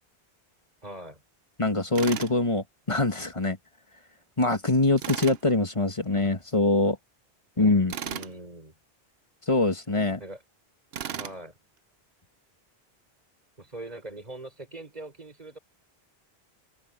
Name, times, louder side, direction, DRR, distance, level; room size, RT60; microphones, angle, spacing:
voice 1, 0.8-1.2 8.0-8.7 10.2-10.4 11.1-11.5 13.6-15.6, right 1 dB, 40° right, 4.5 m, -41 dB
voice 2, 1.6-3.6 4.4-7.0 7.6-8.0 9.5-10.2, left 2 dB, 30° left, 2.0 m, -24 dB
Tools, 2.0-2.4 5.0-5.4 7.9-8.3 10.9-11.4, right 8 dB, 75° right, 1.0 m, -35 dB
omnidirectional pair, 1.0 m